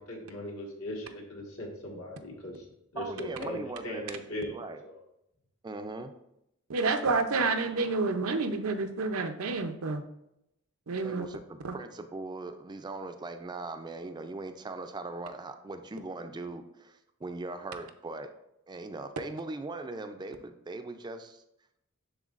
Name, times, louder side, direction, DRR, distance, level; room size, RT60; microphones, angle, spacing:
voice 1, 0.0-2.6 2.9-4.6 4.8-5.0, left 1 dB, 80° left, -1 dB, 1.6 m, -39 dB
voice 2, 2.9-4.8 5.6-6.1 11.0-18.3 18.7-21.4, right 2 dB, 20° right, 8 dB, 0.4 m, -40 dB
voice 3, 6.7-10.0 10.9-11.3 11.6-11.7, right 3 dB, 85° right, 7 dB, 0.6 m, -29 dB
10.0 x 3.8 x 2.5 m, 0.82 s
head